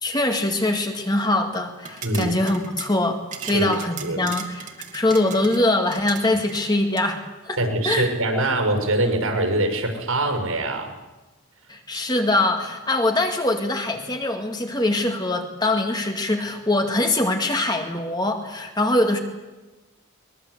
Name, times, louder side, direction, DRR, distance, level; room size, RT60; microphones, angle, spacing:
voice 1, 0.0-3.2 3.5-4.7 4.9-7.6 7.8-8.1 11.7-19.2, left 2 dB, 20° left, 4 dB, 2.1 m, -23 dB
sound 1, 1.8-7.1, right 6 dB, 35° right, 2.5 m, -39 dB
voice 2, 2.0-2.3 3.4-4.2 7.6-10.9, right 1 dB, 80° right, 5 dB, 6.4 m, -24 dB
22.5 x 21.5 x 8.2 m, 1.1 s
head